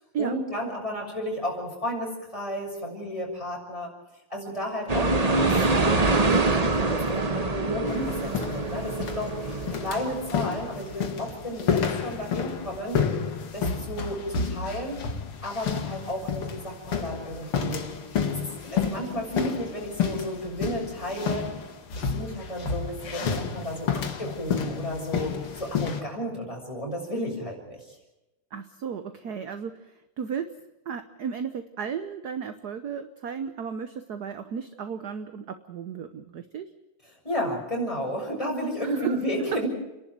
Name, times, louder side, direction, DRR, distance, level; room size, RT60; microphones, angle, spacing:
voice 1, 0.2-3.9 4.3-13.0 13.5-15.0 15.4-17.8 18.3-21.5 21.9-28.0 37.2-39.7, equal, 15° left, -1 dB, 6.5 m, -33 dB
sound 1, 4.9-11.2, right 3 dB, 25° right, 0.9 m, -25 dB
sound 2, 7.9-26.0, left 6 dB, 80° left, 2.7 m, -31 dB
voice 2, 28.5-30.5 30.9-36.7 38.8-39.2 39.5-39.6, right 7 dB, 55° right, 9 dB, 1.3 m, -34 dB
30.0 x 11.5 x 9.3 m, 0.98 s
omnidirectional pair, 2.4 m